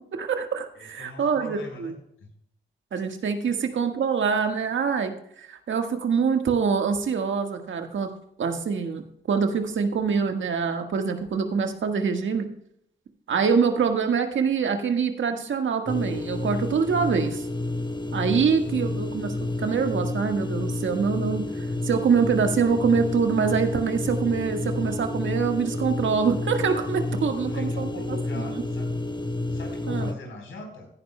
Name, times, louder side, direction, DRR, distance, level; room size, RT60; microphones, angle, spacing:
voice 1, 0.1-1.9 2.9-5.1 5.4-8.1 8.4-9.0 9.3-12.5 13.3-17.4 18.1-27.9 28.3-28.6 29.9-30.1, right 6 dB, 70° right, 5 dB, 1.5 m, -25 dB
voice 2, 0.8-2.3 3.5-3.6 27.3-28.9 29.5-30.9, left 2 dB, 80° left, 2 dB, 4.0 m, -41 dB
sound 1, 15.9-30.1, left 2 dB, 20° left, 1.0 m, -30 dB
15.5 x 11.0 x 2.2 m, 0.71 s
supercardioid pair, 45°, 20 cm